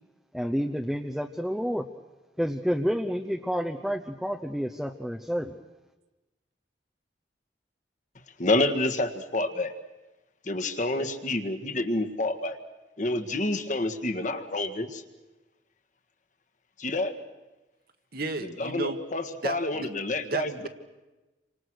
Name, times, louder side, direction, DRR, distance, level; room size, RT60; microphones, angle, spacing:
voice 1, 0.3-1.9 2.4-5.5, equal, ahead, 3 dB, 0.8 m, -29 dB
voice 2, 8.4-9.7 10.4-12.6 13.0-15.0 16.8-17.2 18.6-20.7, left 2 dB, 45° left, 8 dB, 1.7 m, -28 dB
voice 3, 18.1-19.0 19.4-19.9 20.2-20.7, right 3 dB, 55° right, 6 dB, 1.8 m, -33 dB
29.0 x 25.5 x 6.4 m, 1.1 s
head